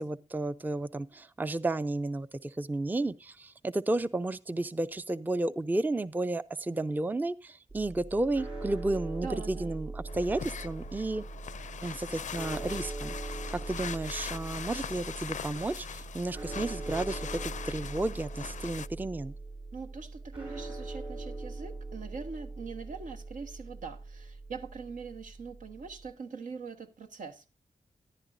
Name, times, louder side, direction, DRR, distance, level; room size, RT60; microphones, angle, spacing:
voice 1, 0.0-11.2 11.8-19.3, right 2 dB, 15° right, 0.4 m, -32 dB
sound 1, 7.7-26.1, right 3 dB, 45° right, 7.0 m, -41 dB
voice 2, 9.2-9.7 19.7-27.4, right 5 dB, 80° right, 1.2 m, -42 dB
sound 2, 10.1-18.9, left 8 dB, 70° left, 0.4 m, -41 dB
13.0 x 11.0 x 2.6 m
cardioid pair, 65°, 13 cm